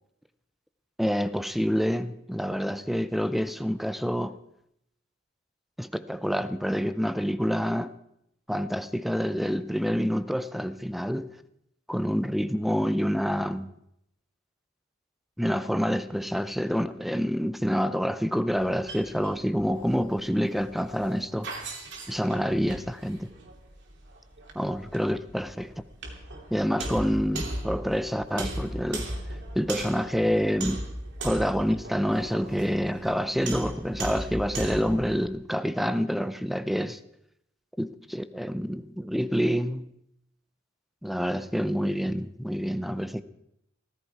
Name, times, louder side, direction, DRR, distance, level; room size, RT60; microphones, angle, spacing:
voice 1, 1.0-4.4 5.8-7.9 8.5-11.3 11.9-13.7 15.4-21.5 22.1-23.3 24.6-25.7 26.5-29.1 29.5-30.8 31.2-37.0 37.8-39.8 41.0-43.2, equal, ahead, 0.6 m, -27 dB
sound 1, 18.5-35.1, right 1 dB, 60° right, 3.0 m, -38 dB
16.5 x 14.5 x 4.7 m
head